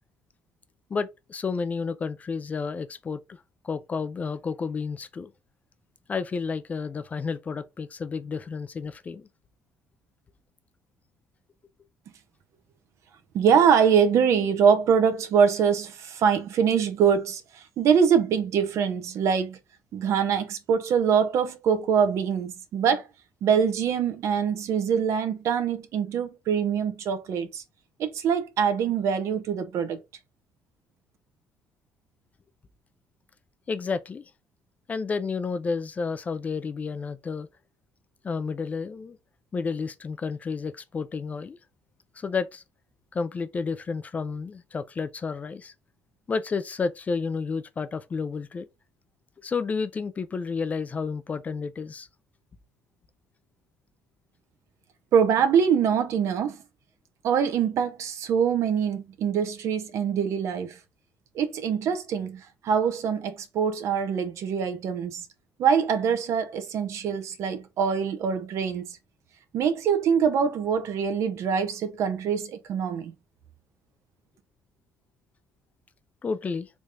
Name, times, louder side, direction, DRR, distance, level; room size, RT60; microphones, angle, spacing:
voice 1, 0.9-5.3 6.1-9.3 33.7-34.2 34.9-37.5 38.2-39.2 39.5-41.6 42.2-42.6 43.1-45.7 46.3-48.7 49.4-52.1 76.2-76.7, left 5 dB, 25° left, 0.3 m, -31 dB
voice 2, 13.3-19.6 19.9-23.1 23.4-27.6 28.0-30.0 55.1-56.6 57.2-60.8 61.3-65.3 65.6-68.8 69.5-73.1, right 7 dB, 60° right, 0.7 m, -24 dB
3.4 x 3.2 x 2.6 m
cardioid pair, 125°, 6 cm